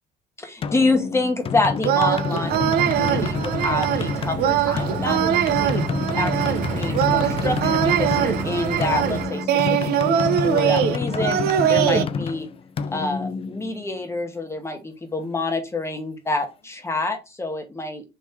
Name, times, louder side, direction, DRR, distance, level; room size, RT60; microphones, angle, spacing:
voice 1, 0.4-2.5 3.0-5.7 6.2-12.5 12.9-18.0, left 2 dB, 15° left, 5 dB, 1.1 m, -27 dB
sound 1, 0.6-14.2, left 5 dB, 35° left, 0.4 m, -28 dB
sound 2, 1.8-12.0, right 10 dB, 70° right, 0.6 m, -22 dB
sound 3, 2.5-9.3, right 5 dB, 50° right, 1.3 m, -31 dB
3.7 x 3.1 x 4.1 m, 0.27 s
cardioid pair, 110°, 17 cm